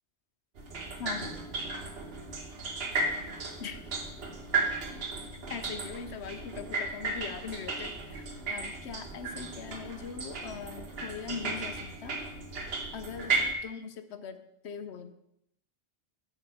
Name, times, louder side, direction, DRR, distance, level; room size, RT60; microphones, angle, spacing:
sound 1, 0.6-13.5, right 3 dB, 65° right, 1.3 m, -35 dB
voice 1, 1.0-1.5 3.6-3.8 5.5-12.2 12.9-15.1, left 6 dB, 80° left, 10 dB, 1.0 m, -41 dB
8.4 x 7.0 x 5.0 m, 0.79 s
omnidirectional pair, 1.1 m